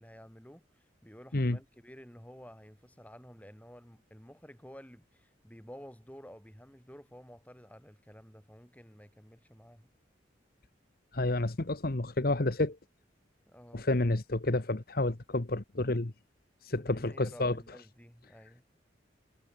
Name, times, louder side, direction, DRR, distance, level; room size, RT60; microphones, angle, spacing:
voice 1, 0.0-9.9 13.5-13.9 16.8-18.6, equal, 5° left, 7.1 m, -52 dB
voice 2, 11.1-12.8 13.7-16.1 16.6-17.6, left 2 dB, 50° left, 1.2 m, -30 dB
head